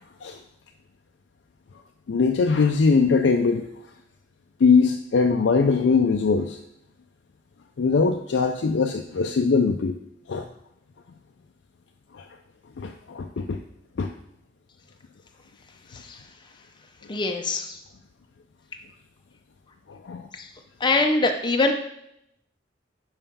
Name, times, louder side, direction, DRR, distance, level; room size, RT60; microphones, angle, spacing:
voice 1, 2.1-3.7 4.6-6.6 7.8-10.0 10.3-10.5 12.1-12.2 12.8-13.6 14.0-14.1 19.9-20.3, left 4 dB, 75° left, 3 dB, 0.4 m, -21 dB
voice 2, 17.1-17.6 20.8-21.7, left 3 dB, 25° left, 4 dB, 0.6 m, -22 dB
5.6 x 4.8 x 5.5 m, 0.78 s
head